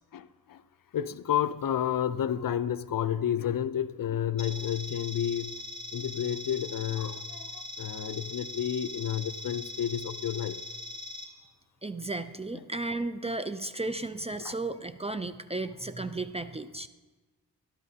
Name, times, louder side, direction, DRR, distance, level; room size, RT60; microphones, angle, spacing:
voice 1, 0.1-0.6 0.9-5.6 5.9-10.6 12.5-12.6 14.4-14.5, left 10 dB, 60° left, 13 dB, 0.6 m, -31 dB
sound 1, 4.4-11.2, left 1 dB, 20° left, 3.2 m, -41 dB
voice 2, 11.8-16.9, right 2 dB, 15° right, 10 dB, 0.4 m, -34 dB
17.5 x 12.0 x 2.8 m, 1.3 s
cardioid pair, 70°, 39 cm